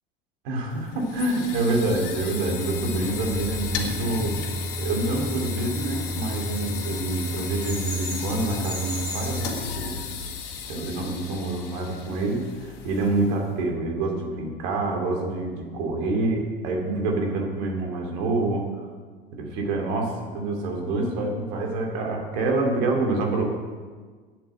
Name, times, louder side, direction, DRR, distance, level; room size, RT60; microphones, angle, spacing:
voice 1, 0.4-4.4 4.8-10.0 10.7-18.9 19.3-23.4, right 2 dB, 55° right, 1 dB, 2.8 m, -27 dB
sound 1, 0.7-13.5, left 2 dB, 55° left, 2.0 m, -32 dB
Bird vocalization bird call bird song, 5.9-9.6, equal, 10° right, 3.1 m, -37 dB
9.9 x 7.7 x 7.7 m, 1.5 s
figure-of-eight pair, 75°, 29 cm